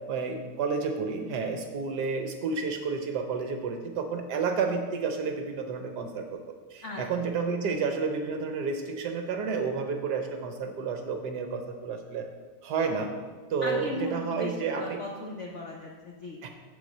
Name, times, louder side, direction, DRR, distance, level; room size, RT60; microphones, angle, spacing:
voice 1, 0.1-6.2 6.7-12.2 12.6-13.1 13.5-15.0 16.4-16.5, right 5 dB, 70° right, 5 dB, 1.1 m, -30 dB
voice 2, 13.6-16.5, left 2 dB, 65° left, 0 dB, 0.7 m, -37 dB
7.9 x 4.3 x 6.5 m, 1.5 s
omnidirectional pair, 2.2 m